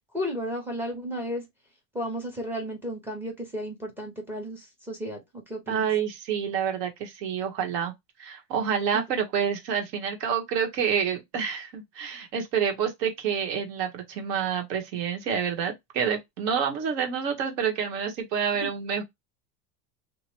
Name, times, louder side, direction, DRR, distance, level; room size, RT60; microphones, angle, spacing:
voice 1, 0.1-1.5 1.9-5.9 8.9-9.0, equal, 5° right, 0.4 m, -33 dB
voice 2, 5.7-7.9 8.2-19.0, right 7 dB, 80° right, 1.4 m, -28 dB
2.9 x 2.2 x 3.0 m
supercardioid pair, 145°, 50 cm